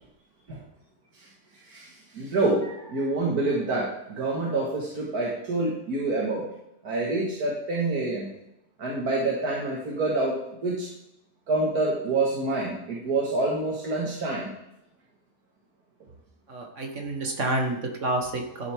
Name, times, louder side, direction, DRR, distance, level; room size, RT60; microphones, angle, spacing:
voice 1, 2.1-6.5 6.8-8.3 8.8-10.3 10.6-10.9 11.5-14.5 18.6-18.7, right 2 dB, 85° right, -3 dB, 2.1 m, -27 dB
voice 2, 16.5-18.7, right 2 dB, 55° right, 3 dB, 1.6 m, -29 dB
12.5 x 7.3 x 3.5 m, 0.83 s
omnidirectional pair, 1.6 m